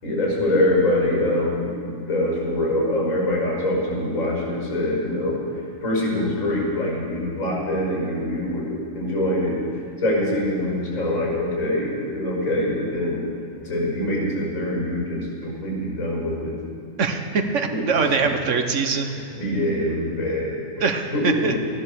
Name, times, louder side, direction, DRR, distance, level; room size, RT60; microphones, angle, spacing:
voice 1, 0.0-5.4 5.8-9.7 10.0-13.2 13.6-16.6 17.7-17.8 19.1-20.8 21.1-21.6, left 1 dB, 90° left, -3 dB, 5.5 m, -24 dB
voice 2, 17.0-19.1 20.8-21.5, right 5 dB, 65° right, 6 dB, 1.3 m, -23 dB
14.5 x 11.0 x 6.8 m, 2.3 s
omnidirectional pair, 1.4 m